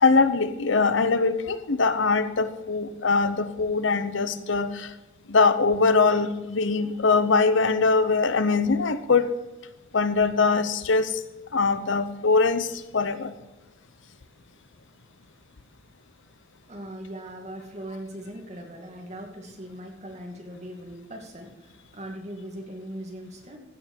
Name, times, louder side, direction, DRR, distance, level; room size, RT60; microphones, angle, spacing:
voice 1, 0.0-4.9 5.3-9.3 9.9-11.2 11.5-13.3, left 4 dB, 75° left, 12 dB, 0.8 m, -22 dB
voice 2, 16.7-23.6, right 1 dB, 35° right, 1 dB, 2.3 m, -40 dB
15.5 x 7.2 x 5.5 m, 1.1 s
head